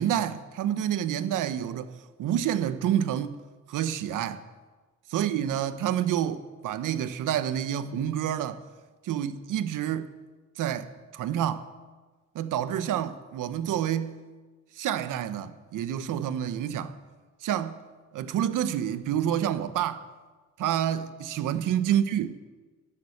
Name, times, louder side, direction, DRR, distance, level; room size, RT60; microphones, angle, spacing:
voice 1, 0.0-3.4 3.7-4.4 5.1-8.6 9.0-10.1 10.6-11.7 12.3-14.2 14.7-17.0 17.4-17.8 18.1-20.0 20.6-22.3, right 10 dB, 70° right, 1.1 m, -28 dB
13.5 x 11.5 x 8.6 m
cardioid pair, 95°, 32 cm